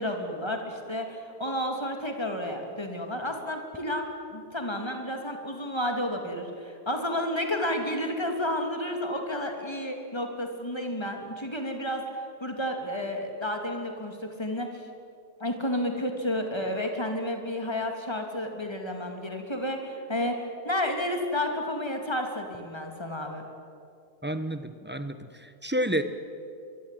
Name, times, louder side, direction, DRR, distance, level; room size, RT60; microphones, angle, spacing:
voice 1, 0.0-14.8 15.4-23.4, left 1 dB, 15° left, 3 dB, 3.2 m, -31 dB
voice 2, 24.2-26.0, right 1 dB, 5° right, 10 dB, 1.1 m, -30 dB
25.0 x 23.0 x 9.4 m, 2.5 s
omnidirectional pair, 1.7 m